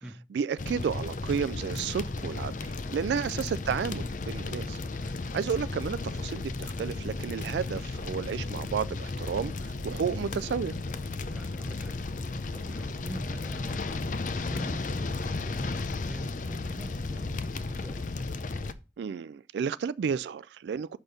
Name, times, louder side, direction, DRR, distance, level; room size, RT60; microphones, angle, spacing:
voice 1, 0.3-4.8 5.3-10.7 19.0-21.0, right 7 dB, 75° right, 0.3 m, -32 dB
sound 1, 0.6-18.7, left 3 dB, 45° left, 0.5 m, -34 dB
voice 2, 2.9-3.2 11.3-11.9 12.5-14.0 14.4-18.0, right 1 dB, 5° right, 0.7 m, -44 dB
6.2 x 5.1 x 6.6 m
head